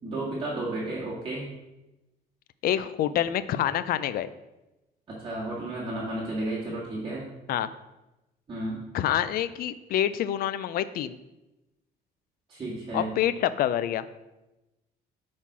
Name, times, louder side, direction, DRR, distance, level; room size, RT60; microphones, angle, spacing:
voice 1, 0.0-1.4 5.1-7.3 8.5-8.8 12.5-13.1, right 2 dB, 30° right, -7 dB, 2.0 m, -32 dB
voice 2, 2.6-4.3 7.5-7.7 8.9-11.2 12.9-14.0, left 11 dB, 60° left, 14 dB, 0.4 m, -27 dB
7.2 x 4.3 x 4.7 m, 0.99 s
cardioid pair, 110°, 17 cm